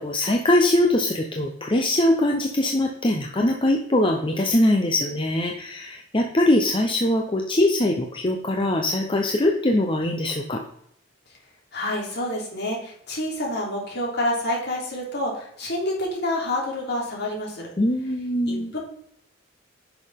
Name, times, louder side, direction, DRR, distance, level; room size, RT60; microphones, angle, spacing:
voice 1, 0.0-10.6 17.8-18.7, left 1 dB, 25° left, 2 dB, 0.8 m, -22 dB
voice 2, 11.7-17.7 18.5-18.8, left 1 dB, 55° left, -2 dB, 3.3 m, -28 dB
10.0 x 6.1 x 3.7 m, 0.70 s
head